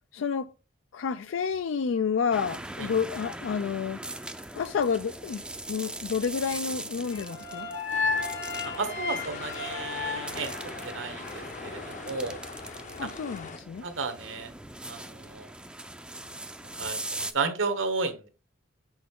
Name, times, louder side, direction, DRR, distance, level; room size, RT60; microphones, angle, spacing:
voice 1, 0.1-0.5 0.9-4.0 4.5-5.4 5.7-7.7 13.0-13.9, left 6 dB, 70° left, 0.4 m, -29 dB
sound 1, 2.3-17.3, right 1 dB, 5° right, 0.5 m, -41 dB
sound 2, 7.1-11.3, left 4 dB, 90° left, 1.5 m, -33 dB
sound 3, 7.9-13.6, left 4 dB, 40° left, 0.7 m, -42 dB
voice 2, 8.6-12.4 13.0-13.1 13.8-14.5 14.8-15.5 16.8-18.3, right 4 dB, 70° right, 1.3 m, -33 dB
6.2 x 5.5 x 3.6 m
head